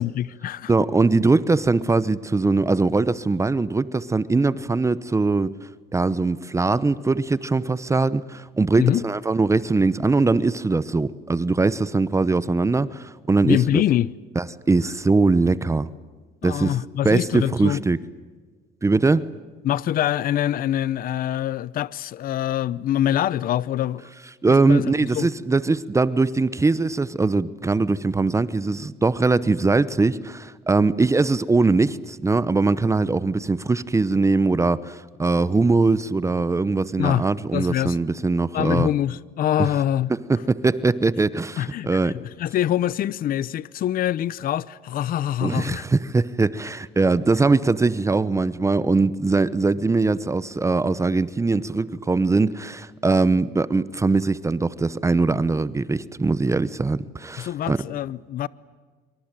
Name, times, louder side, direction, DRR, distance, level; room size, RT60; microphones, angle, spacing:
voice 1, 0.0-0.7 8.8-9.0 13.4-14.1 16.4-17.8 19.6-24.1 24.7-25.3 37.0-37.3 37.5-38.0 38.5-40.1 41.6-45.9 57.4-58.5, left 11 dB, 60° left, 0.8 m, -24 dB
voice 2, 0.7-5.5 5.9-13.8 14.4-15.9 16.4-16.8 17.0-18.0 18.8-19.3 24.4-38.9 40.1-42.2 45.4-57.8, right 3 dB, 15° right, 0.9 m, -21 dB
26.0 x 24.5 x 9.0 m
cardioid pair, 110°, 17 cm